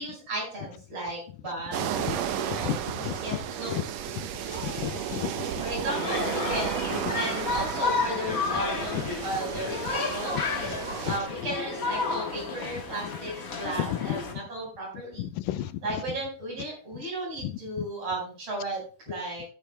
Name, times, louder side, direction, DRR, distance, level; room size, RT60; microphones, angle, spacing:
voice 1, 0.0-2.8 3.2-3.9 5.6-10.7 11.0-15.3 15.5-19.5, right 1 dB, 45° right, 6.2 m, -35 dB
sound 1, 1.7-11.2, right 9 dB, 75° right, 1.6 m, -33 dB
voice 2, 2.5-3.1 4.5-5.5 15.2-15.7, left 13 dB, 90° left, 2.3 m, -33 dB
sound 2, 5.9-14.3, left 4 dB, 45° left, 1.1 m, -31 dB
13.5 x 10.0 x 2.3 m
omnidirectional pair, 3.8 m